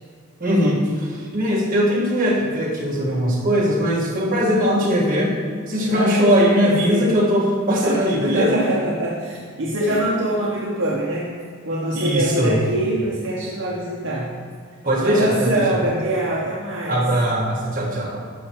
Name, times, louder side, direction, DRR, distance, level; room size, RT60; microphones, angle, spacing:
voice 1, 0.4-5.3 5.7-8.6 9.9-10.0 11.9-12.6 14.8-15.8 16.9-18.2, equal, 40° right, -5 dB, 1.5 m, -20 dB
voice 2, 4.4-4.8 5.9-7.1 7.8-11.4 11.6-14.3 14.9-17.1, right 1 dB, 60° right, -4 dB, 0.9 m, -24 dB
12.0 x 5.6 x 3.0 m, 2.2 s
head